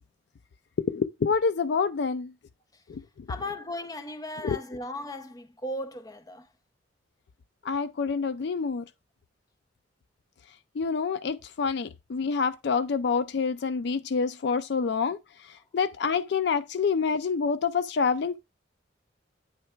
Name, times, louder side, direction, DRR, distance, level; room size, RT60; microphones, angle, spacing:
voice 1, 0.9-2.3 2.9-3.0 4.4-4.6 7.6-8.8 10.8-15.2 15.7-18.4, left 5 dB, 60° left, 0.4 m, -27 dB
voice 2, 3.3-6.5, left 1 dB, 20° left, 0.6 m, -36 dB
8.8 x 3.2 x 4.4 m
head